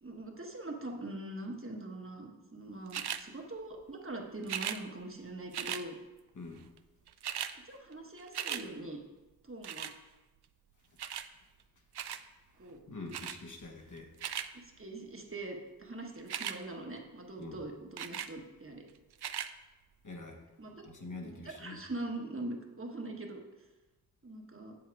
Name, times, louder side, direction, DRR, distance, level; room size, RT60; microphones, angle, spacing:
voice 1, 0.0-6.0 7.6-9.0 9.4-9.9 12.6-12.9 14.5-18.8 19.3-19.4 20.6-20.8 21.2-23.4 24.2-24.8, right 2 dB, 35° right, 1 dB, 1.3 m, -42 dB
sound 1, 2.9-3.2 4.4-4.8 5.5-5.8 6.8-6.9 7.1-7.5 7.9-8.6 9.6-10.0 11.0-11.3 11.9-12.2 13.1-13.4 14.0-14.5 16.2-16.6 18.0-18.3 19.1-19.5 20.2-20.3, right 9 dB, 85° right, 0.5 m, -37 dB
voice 2, 6.3-6.7 12.9-14.1 17.4-17.6 20.0-20.4 20.8-21.8, left 3 dB, 50° left, 3 dB, 1.3 m, -45 dB
7.6 x 7.3 x 4.7 m, 1.1 s
wide cardioid pair, 85°, 38 cm